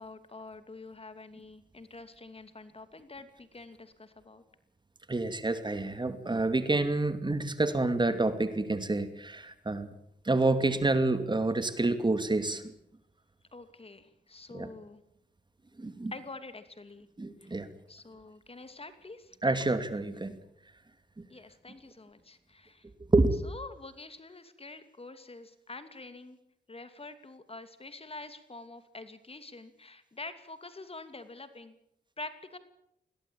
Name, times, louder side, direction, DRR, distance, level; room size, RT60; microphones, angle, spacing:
voice 1, 0.0-4.4 13.5-15.0 16.1-17.1 17.9-19.4 21.3-22.8 23.5-26.4 26.7-31.7 32.2-32.6, left 3 dB, 35° left, 10 dB, 2.7 m, -46 dB
voice 2, 5.1-9.9 10.2-12.6 14.5-14.7 15.8-16.1 17.2-17.7 19.4-20.3 23.1-23.4, right 2 dB, 25° right, 10 dB, 2.6 m, -28 dB
22.0 x 17.0 x 8.8 m, 0.77 s
cardioid pair, 55°, 17 cm